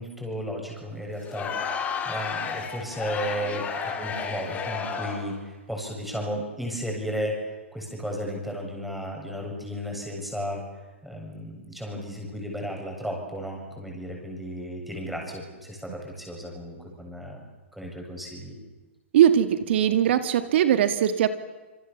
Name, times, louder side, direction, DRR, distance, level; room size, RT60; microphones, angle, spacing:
voice 1, 0.0-10.6 11.0-17.4 17.7-18.6, equal, ahead, 0 dB, 7.5 m, -34 dB
Crowd, 1.2-5.4, left 6 dB, 20° left, 3.4 m, -32 dB
voice 2, 19.1-21.3, right 10 dB, 60° right, 10 dB, 1.9 m, -20 dB
27.0 x 23.0 x 7.2 m, 1.2 s
hypercardioid pair, 125°, 7 cm